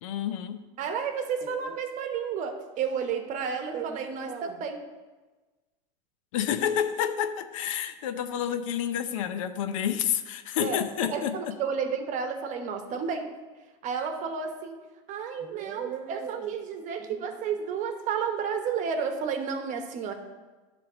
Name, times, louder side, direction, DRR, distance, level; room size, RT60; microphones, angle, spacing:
voice 1, 0.0-0.6 6.3-11.4, left 9 dB, 80° left, 10 dB, 0.7 m, -29 dB
voice 2, 0.8-4.8 10.6-10.8 11.1-13.3 13.8-14.8 15.1-20.1, right 6 dB, 50° right, 6 dB, 1.1 m, -31 dB
10.5 x 3.5 x 6.1 m, 1.3 s
supercardioid pair, 105°, 16 cm